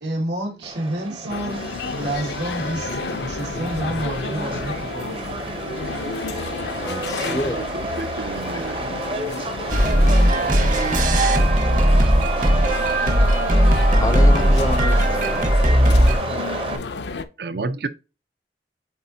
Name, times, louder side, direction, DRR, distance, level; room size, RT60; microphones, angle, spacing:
voice 1, 0.0-5.7, right 1 dB, 85° right, 2.3 m, -29 dB
Subway metro underground, 0.6-16.8, right 2 dB, 30° right, 0.8 m, -30 dB
sound 1, 1.3-17.2, left 4 dB, 75° left, 0.5 m, -31 dB
voice 2, 6.8-7.7 14.0-15.8, left 1 dB, 20° left, 0.5 m, -28 dB
voice 3, 7.7-8.9 17.4-17.9, right 3 dB, 65° right, 0.6 m, -30 dB
sound 2, 9.7-16.2, equal, 45° right, 1.3 m, -17 dB
8.2 x 4.1 x 2.7 m
head